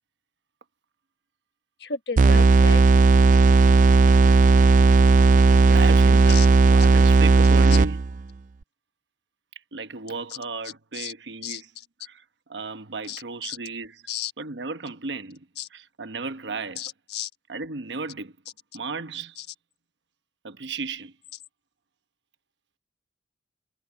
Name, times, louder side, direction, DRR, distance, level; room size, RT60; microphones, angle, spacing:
voice 1, 1.8-2.8 6.3-6.5 10.9-11.1 11.4-11.6 13.1-13.6 14.1-14.3 15.6-15.7 16.8-17.3 19.4-19.5, left 7 dB, 70° left, 1.4 m, -33 dB
sound 1, 2.2-8.2, right 3 dB, 45° right, 0.4 m, -15 dB
voice 2, 5.7-6.5 6.7-8.0 9.7-11.7 12.0-14.0 14.4-16.8 17.5-18.4 18.7-19.4 20.4-21.1, right 4 dB, 85° right, 1.1 m, -34 dB
head